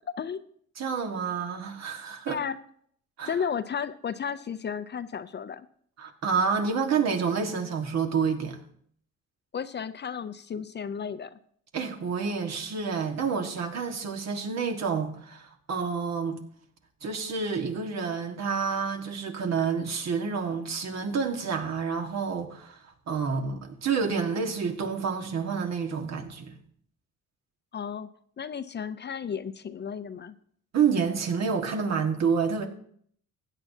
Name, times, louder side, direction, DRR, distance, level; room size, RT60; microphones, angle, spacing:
voice 1, 0.8-2.4 3.2-3.3 6.0-8.6 11.7-16.4 17.0-26.6 30.7-32.7, right 5 dB, 60° right, 1.6 m, -29 dB
voice 2, 2.3-2.6 3.3-5.7 9.5-11.4 27.7-28.1 28.4-30.3, left 7 dB, 35° left, 0.5 m, -33 dB
15.5 x 9.2 x 2.8 m
cardioid pair, 90°, 30 cm